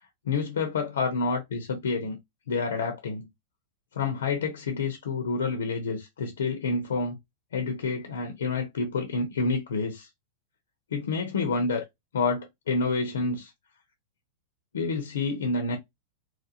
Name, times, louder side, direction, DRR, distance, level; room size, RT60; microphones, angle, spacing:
voice 1, 0.2-2.2 2.5-3.3 3.9-7.2 7.5-10.1 10.9-11.8 12.1-13.5 14.7-15.8, left 4 dB, 90° left, 0.8 m, -28 dB
3.1 x 2.6 x 2.8 m
hypercardioid pair, 135°, 0 cm